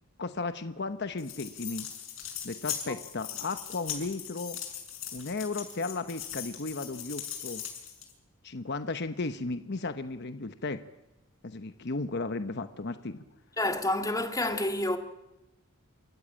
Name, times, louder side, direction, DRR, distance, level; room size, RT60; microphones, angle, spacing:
voice 1, 0.2-1.9 2.4-4.6 5.1-7.6 8.4-10.8 11.4-13.2, left 3 dB, 55° left, 0.9 m, -35 dB
sound 1, 1.2-8.1, left 9 dB, 70° left, 6.5 m, -39 dB
voice 2, 13.6-15.0, left 1 dB, 15° left, 1.7 m, -29 dB
28.0 x 14.0 x 8.8 m
head